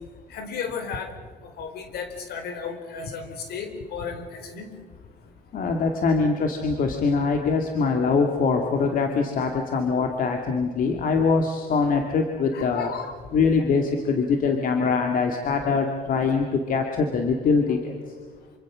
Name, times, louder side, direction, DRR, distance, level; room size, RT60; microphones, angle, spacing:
voice 1, 0.3-1.1 1.4-4.7 12.5-13.1, left 6 dB, 70° left, 7 dB, 4.5 m, -34 dB
voice 2, 5.5-12.9 13.3-18.0, left 4 dB, 55° left, 3 dB, 2.4 m, -23 dB
27.0 x 25.5 x 6.3 m, 1.5 s
cardioid pair, 110°, 17 cm